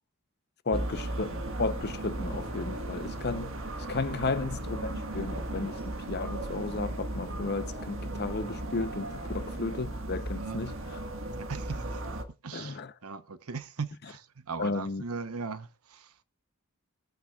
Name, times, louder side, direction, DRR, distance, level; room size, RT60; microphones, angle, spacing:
voice 1, 0.7-3.5 3.9-10.8 12.5-12.9 14.6-15.0, left 3 dB, 50° left, 0.9 m, -34 dB
sound 1, 0.7-12.2, right 1 dB, 60° right, 1.7 m, -36 dB
voice 2, 11.3-12.0 12.4-16.1, right 4 dB, 80° right, 1.0 m, -39 dB
22.0 x 8.8 x 2.4 m
head